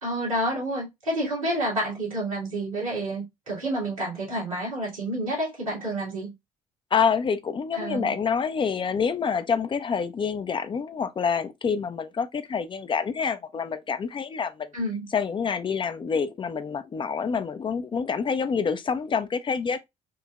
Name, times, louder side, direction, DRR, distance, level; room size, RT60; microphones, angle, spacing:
voice 1, 0.0-6.3 7.8-8.2 14.7-15.1, right 1 dB, 85° right, 2.0 m, -29 dB
voice 2, 6.9-14.7 15.1-19.9, left 6 dB, 30° left, 0.5 m, -27 dB
4.4 x 2.8 x 2.3 m
figure-of-eight pair, 50°, 17 cm